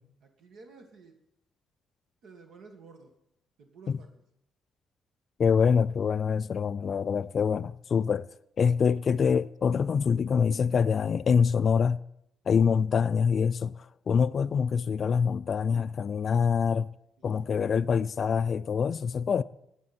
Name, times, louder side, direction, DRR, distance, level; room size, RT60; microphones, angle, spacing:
voice 1, 0.2-1.2 2.2-3.1 3.6-4.1 17.2-17.7, right 4 dB, 75° right, 1.6 m, -52 dB
voice 2, 5.4-8.3 8.6-12.0 12.5-13.7 14.1-16.9 17.2-19.4, left 6 dB, 50° left, 0.3 m, -25 dB
17.0 x 7.2 x 4.3 m
cardioid pair, 90°, 0 cm